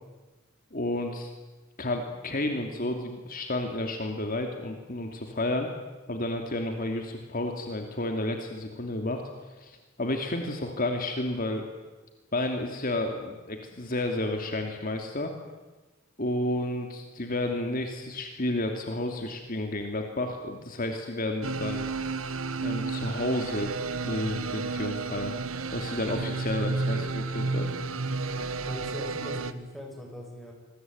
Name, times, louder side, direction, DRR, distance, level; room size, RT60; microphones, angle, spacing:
voice 1, 0.7-1.3 1.8-5.7 6.1-9.2 9.6-11.7 12.3-15.3 16.2-21.8 22.6-23.7 24.0-25.4 25.7-27.7 28.4-28.5, left 1 dB, 45° left, 4 dB, 2.8 m, -31 dB
sound 1, 21.4-29.5, right 3 dB, 90° right, 1.4 m, -31 dB
voice 2, 28.7-30.5, equal, ahead, 1 dB, 7.1 m, -40 dB
26.5 x 22.0 x 9.5 m, 1.2 s
head